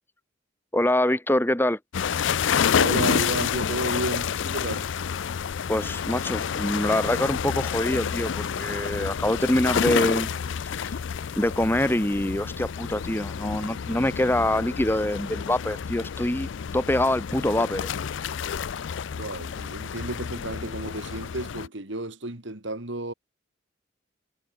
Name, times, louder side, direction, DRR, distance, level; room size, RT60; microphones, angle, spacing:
voice 1, 0.7-1.8 5.7-10.3 10.6-10.9 11.4-16.5 16.7-17.9, left 1 dB, 10° left, 1.0 m, -25 dB
sound 1, 1.9-21.7, left 7 dB, 65° left, 0.4 m, -29 dB
voice 2, 2.8-4.9 19.1-23.1, right 2 dB, 60° right, 2.3 m, -32 dB
head